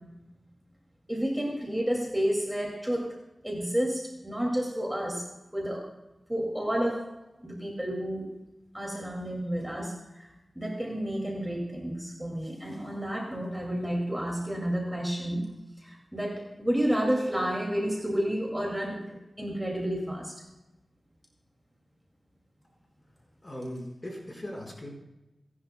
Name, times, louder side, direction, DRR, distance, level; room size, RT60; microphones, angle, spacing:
voice 1, 1.1-5.9 6.3-7.2 7.4-8.4 8.7-10.3 10.6-15.5 15.8-19.1 19.4-20.3, equal, 10° right, -2 dB, 2.3 m, -30 dB
voice 2, 23.4-24.9, equal, 30° left, -1 dB, 4.7 m, -39 dB
29.0 x 11.0 x 2.2 m, 0.99 s
wide cardioid pair, 105°, 0 cm